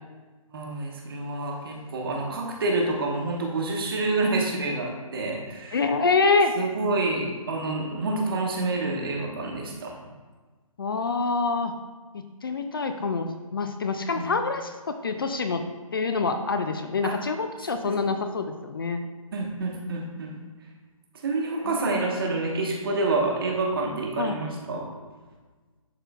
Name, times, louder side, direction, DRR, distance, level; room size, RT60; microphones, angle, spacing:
voice 1, 0.5-5.9 6.6-9.9 14.1-14.3 17.0-17.1 17.8-18.1 19.3-20.3 21.2-24.9, right 2 dB, 40° right, 0 dB, 1.2 m, -28 dB
voice 2, 5.7-6.5 10.8-11.7 12.4-15.6 15.9-19.0 21.7-22.1 24.2-24.4, left 4 dB, 40° left, 7 dB, 0.4 m, -26 dB
11.5 x 4.4 x 2.3 m, 1.3 s
figure-of-eight pair, 140°, 18 cm